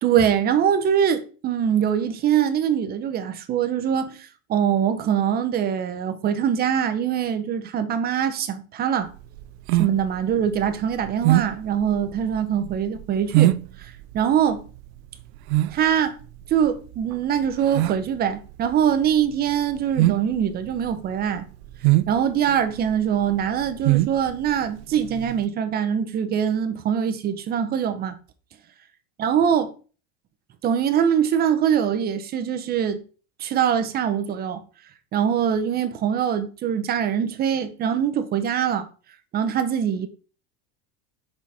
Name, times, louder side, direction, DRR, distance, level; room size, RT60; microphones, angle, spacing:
voice 1, 0.0-9.1 9.8-14.6 15.7-16.2 16.5-21.4 22.1-28.2 29.2-29.7 30.6-33.0 33.4-34.6 35.1-38.9 39.3-40.1, right 8 dB, 30° right, 0.7 m, -23 dB
sound 1, 9.1-25.4, right 16 dB, 85° right, 0.5 m, -25 dB
6.2 x 4.2 x 4.8 m
cardioid pair, 155°, 33 cm